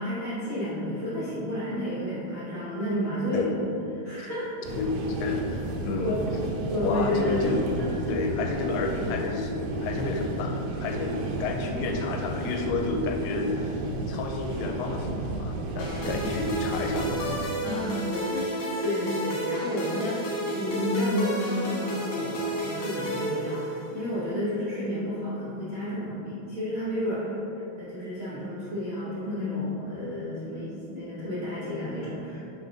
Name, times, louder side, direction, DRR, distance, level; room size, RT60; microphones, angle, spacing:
voice 1, 0.0-4.7 6.0-6.3 6.7-7.4 7.7-7.9 17.6-18.5 18.8-27.4 27.8-32.5, left 1 dB, 70° right, -12 dB, 1.2 m, -31 dB
sound 1, 4.6-17.5, right 2 dB, 90° right, 2.0 m, -33 dB
voice 2, 4.8-6.2 6.8-7.6 8.1-10.5 10.8-13.8 14.1-17.2, left 3 dB, 80° left, 2 dB, 2.5 m, -30 dB
sound 2, 15.8-24.1, right 1 dB, 60° left, 1.8 m, -31 dB
7.2 x 3.2 x 5.9 m, 3.0 s
omnidirectional pair, 4.8 m